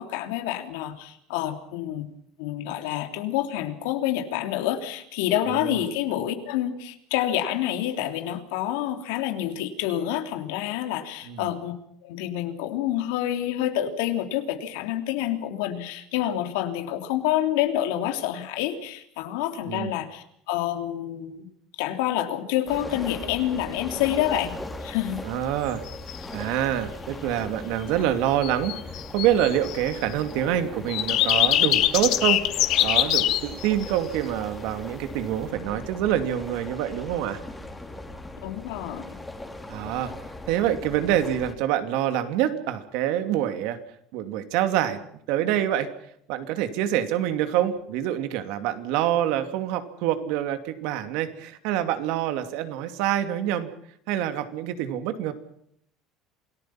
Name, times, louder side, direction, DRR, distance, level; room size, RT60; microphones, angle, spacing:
voice 1, 0.0-2.1 2.4-11.8 12.0-21.5 21.8-24.5 24.8-25.2 38.4-39.2, left 12 dB, 85° left, 7 dB, 3.3 m, -28 dB
voice 2, 5.5-5.8 11.3-11.5 19.6-19.9 25.2-25.8 26.3-28.8 29.1-32.4 32.8-37.4 39.7-40.1 40.5-43.8 44.1-45.0 45.3-45.9 46.3-53.7 54.1-55.3, right 11 dB, 70° right, 9 dB, 2.6 m, -26 dB
sound 1, 22.7-41.5, left 2 dB, 5° left, 3.0 m, -39 dB
sound 2, 25.9-26.3 28.4-30.2 30.9-34.0, left 13 dB, 50° left, 2.0 m, -23 dB
27.5 x 18.5 x 5.9 m, 0.70 s
cardioid pair, 160°, 0 cm